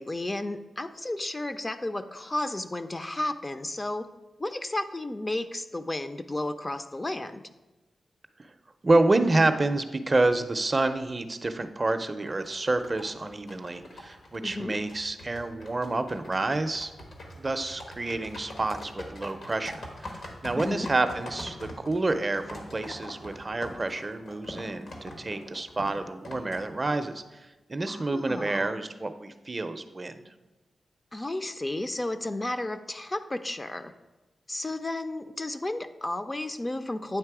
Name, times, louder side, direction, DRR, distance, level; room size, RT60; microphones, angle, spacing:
voice 1, 0.0-4.1 4.4-7.4 14.4-14.8 20.6-20.9 27.9-28.7 31.1-33.9 34.5-37.2, left 1 dB, 25° left, 9 dB, 0.4 m, -33 dB
voice 2, 8.8-16.9 17.3-30.2, right 2 dB, 35° right, 9 dB, 0.4 m, -28 dB
sound 1, 12.3-27.2, left 1 dB, 80° left, 1.3 m, -43 dB
9.0 x 3.1 x 4.7 m, 1.1 s
cardioid pair, 65°, 0 cm